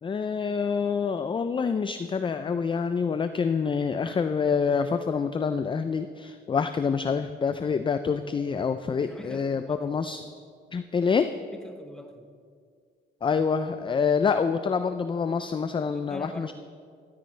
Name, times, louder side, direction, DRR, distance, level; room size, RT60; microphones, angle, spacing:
voice 1, 0.0-10.2 10.7-11.3 13.2-16.5, left 5 dB, 25° left, 10 dB, 0.4 m, -26 dB
voice 2, 9.0-9.9 11.5-12.2 15.8-16.5, left 1 dB, 5° left, 5 dB, 1.2 m, -43 dB
13.5 x 13.5 x 3.3 m, 2.1 s
cardioid pair, 90°, 20 cm